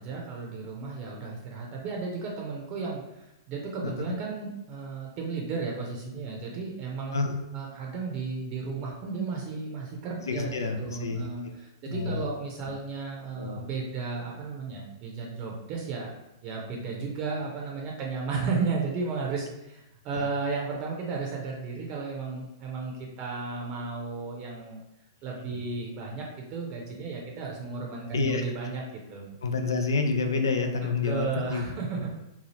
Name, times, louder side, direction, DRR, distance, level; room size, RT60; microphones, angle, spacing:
voice 1, 0.0-7.1 7.5-16.1 16.4-24.8 25.2-28.8 29.1-29.3 31.0-32.1, right 4 dB, 40° right, -1 dB, 0.6 m, -34 dB
voice 2, 10.2-11.2 11.9-12.2 13.4-13.6 20.1-20.2 25.5-25.6 28.1-28.4 29.4-31.7, left 4 dB, 75° left, 6 dB, 0.4 m, -28 dB
2.8 x 2.3 x 3.1 m, 0.93 s
figure-of-eight pair, 105°, 2 cm